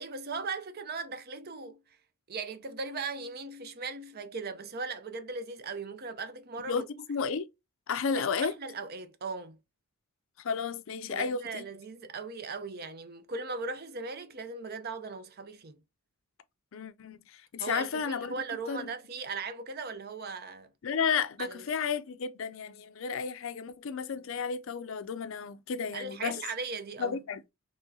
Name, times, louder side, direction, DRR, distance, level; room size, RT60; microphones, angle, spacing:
voice 1, 0.0-1.8 2.3-6.8 8.1-9.6 11.1-15.7 17.6-20.7 21.4-21.6 25.9-27.2, right 4 dB, 50° right, 0.6 m, -38 dB
voice 2, 6.7-7.5 7.9-8.5 10.4-11.6 16.7-18.4 18.7-18.9 20.8-26.4 27.0-27.4, left 6 dB, 70° left, 0.4 m, -32 dB
4.5 x 3.1 x 2.7 m
head